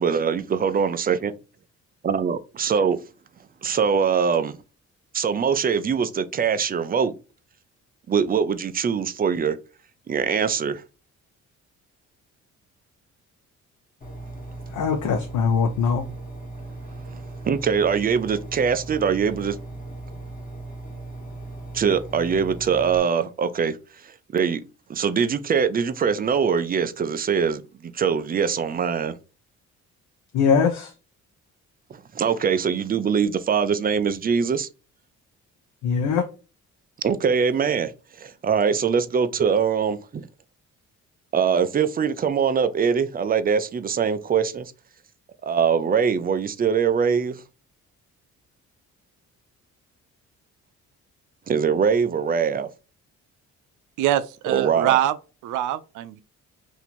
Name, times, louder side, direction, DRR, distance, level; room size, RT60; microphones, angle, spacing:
voice 1, 0.0-1.3 2.0-3.0 3.6-4.6 5.1-7.1 8.1-9.6 10.1-10.8 17.1-19.6 21.7-23.8 24.0-24.6 24.9-29.2 31.9-34.7 37.0-37.9 38.2-40.3 41.3-44.7 45.4-47.4 51.5-52.7 54.5-55.0, right 6 dB, 30° right, 0.4 m, -23 dB
Engine, 14.0-23.0, right 2 dB, 30° left, 1.3 m, -38 dB
voice 2, 14.7-16.0 30.3-30.9 35.8-36.2, left 6 dB, 80° left, 0.7 m, -21 dB
voice 3, 54.0-55.1 55.4-56.2, right 12 dB, 90° right, 0.5 m, -23 dB
2.9 x 2.6 x 4.2 m
cardioid pair, 90°, 30 cm